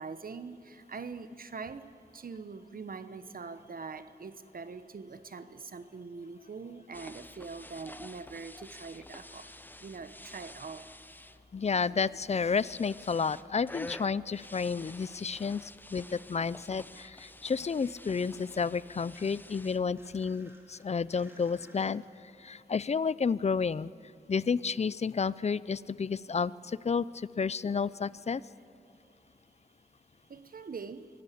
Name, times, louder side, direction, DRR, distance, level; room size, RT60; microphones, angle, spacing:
voice 1, 0.0-9.5 9.8-10.9 30.3-31.1, right 4 dB, 60° right, 11 dB, 1.0 m, -43 dB
sound 1, 6.9-20.3, left 1 dB, 10° left, 0.8 m, -50 dB
voice 2, 11.5-22.0 22.4-23.9 24.3-28.4, left 5 dB, 40° left, 19 dB, 0.5 m, -31 dB
sound 2, 14.3-16.0 16.3-21.9, right 1 dB, 15° right, 4.0 m, -62 dB
24.0 x 16.5 x 8.5 m, 2.9 s
wide cardioid pair, 70°, 17 cm